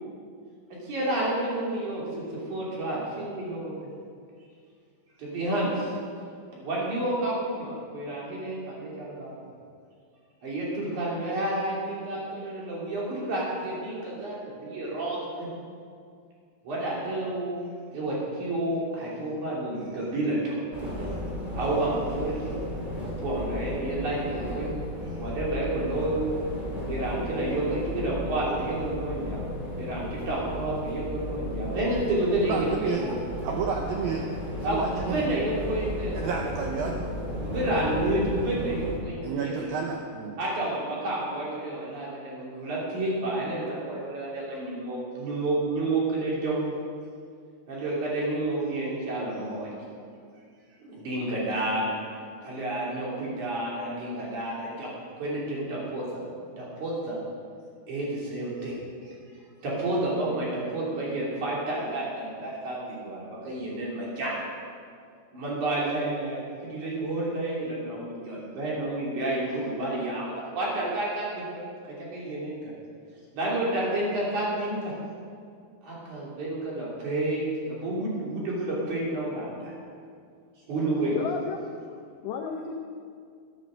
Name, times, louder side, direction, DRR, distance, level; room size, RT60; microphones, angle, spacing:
voice 1, 0.8-3.9 5.2-5.9 6.5-9.3 10.4-15.5 16.6-17.6 17.9-20.5 21.5-22.5 23.2-24.7 25.2-26.4 26.9-29.4 29.8-33.2 34.6-36.3 37.4-39.8 40.4-46.6 47.7-49.7 50.8-51.9 52.4-54.9 55.2-56.2 56.6-57.2 57.9-59.1 59.6-64.3 65.3-72.6 73.3-74.9 75.8-79.7 80.7-81.2, right 1 dB, 45° right, -5 dB, 4.2 m, -30 dB
sound 1, 20.7-39.0, left 1 dB, 20° right, 1.4 m, -34 dB
voice 2, 32.5-33.0 33.4-34.2 34.6-35.4 36.1-37.0 39.2-40.4, right 6 dB, 75° right, 1 dB, 2.2 m, -31 dB
voice 3, 81.1-81.6 81.9-82.7, left 6 dB, 85° left, 3 dB, 1.9 m, -33 dB
13.0 x 10.0 x 6.5 m, 2.2 s
omnidirectional pair, 5.0 m